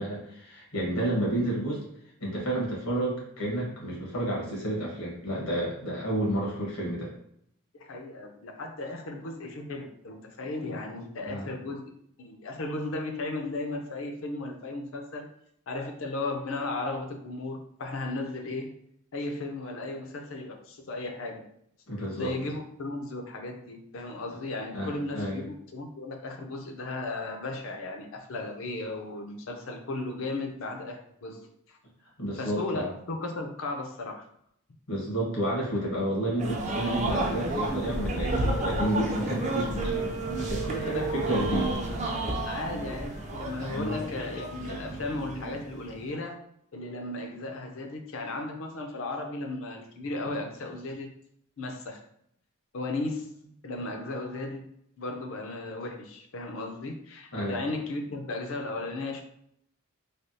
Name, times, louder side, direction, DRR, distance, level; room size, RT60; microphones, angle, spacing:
voice 1, 0.0-1.9 2.2-7.1 11.2-11.5 21.9-22.3 24.7-25.4 32.2-32.9 34.9-40.1 40.3-41.7 43.7-44.0 57.3-57.6, right 1 dB, 90° left, -3 dB, 1.3 m, -30 dB
voice 2, 7.8-11.8 12.2-15.3 15.7-18.7 19.1-21.4 22.1-31.8 32.4-34.2 40.9-41.4 42.5-46.4 46.7-51.1 51.6-52.0 52.7-54.6 55.0-59.2, left 2 dB, 65° left, 4 dB, 0.5 m, -35 dB
sound 1, 36.4-46.1, right 2 dB, 35° right, 0.4 m, -31 dB
3.3 x 2.3 x 2.7 m, 0.71 s
head